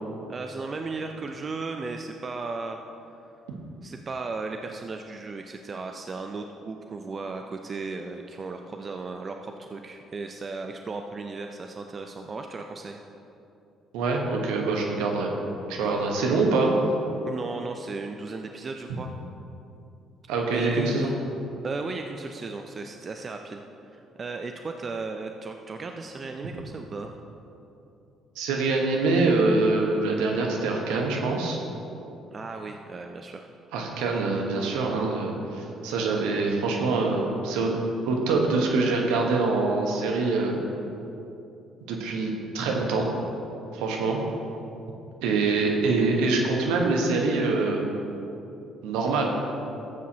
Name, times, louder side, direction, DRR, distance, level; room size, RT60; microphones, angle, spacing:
voice 1, 0.3-2.8 3.8-13.0 15.8-16.1 17.3-19.1 20.5-21.1 21.6-23.6 23.9-27.2 32.3-33.5, right 3 dB, 40° right, 5 dB, 0.6 m, -35 dB
voice 2, 13.9-15.3 15.7-16.7 20.3-21.1 28.3-31.6 33.7-37.7 38.0-40.6 41.9-43.1 43.7-44.2 45.2-47.9 48.8-49.3, right 3 dB, 75° right, 1 dB, 1.2 m, -24 dB
14.0 x 8.4 x 2.9 m, 2.8 s
hypercardioid pair, 45°, 0 cm